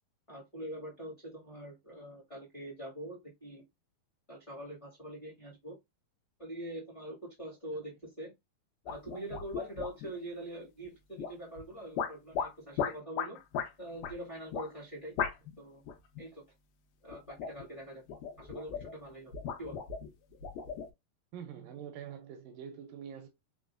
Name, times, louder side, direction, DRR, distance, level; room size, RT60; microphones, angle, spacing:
voice 1, 0.3-3.6 4.3-5.8 6.4-8.3 8.8-13.4 13.8-15.2 15.6-15.8 16.2-16.4 17.0-18.0 18.4-19.8, right 1 dB, 55° left, 0.3 m, -44 dB
sound 1, 8.9-10.2 11.2-11.6 12.0-13.7 14.0-14.1 14.5-14.7 15.2-15.6 15.9-16.2 17.1-17.7 18.1-19.0 19.3-20.9, left 7 dB, 85° left, 2.7 m, -36 dB
voice 2, 21.3-23.3, right 8 dB, 80° right, 2.0 m, -45 dB
5.9 x 2.1 x 2.4 m
omnidirectional pair, 4.2 m